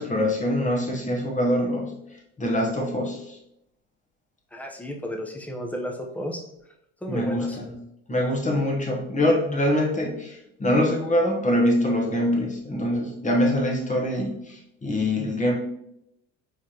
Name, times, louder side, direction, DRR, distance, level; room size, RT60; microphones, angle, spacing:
voice 1, 0.0-1.9 2.4-3.4 7.1-7.8 8.1-15.5, left 1 dB, 20° left, 0 dB, 1.2 m, -24 dB
voice 2, 4.5-6.4 7.0-7.6, equal, 5° left, 1 dB, 0.9 m, -33 dB
4.8 x 3.5 x 3.0 m, 0.80 s
hypercardioid pair, 75°, 36 cm